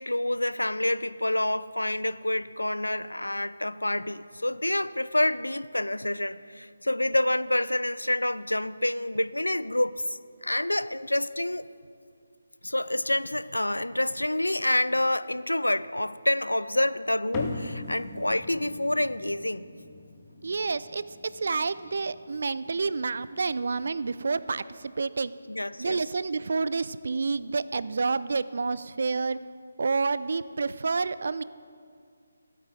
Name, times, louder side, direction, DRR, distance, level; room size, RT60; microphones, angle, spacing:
voice 1, 0.0-11.7 12.6-19.7 25.5-26.1, left 1 dB, 80° left, 16 dB, 0.4 m, -28 dB
sound 1, 17.3-24.1, left 3 dB, 15° left, 0.8 m, -41 dB
voice 2, 20.4-21.0 21.4-25.3 25.8-29.4 29.8-31.4, right 4 dB, 50° right, 16 dB, 0.3 m, -29 dB
15.5 x 8.5 x 3.4 m, 2.2 s
figure-of-eight pair, 150°, 0 cm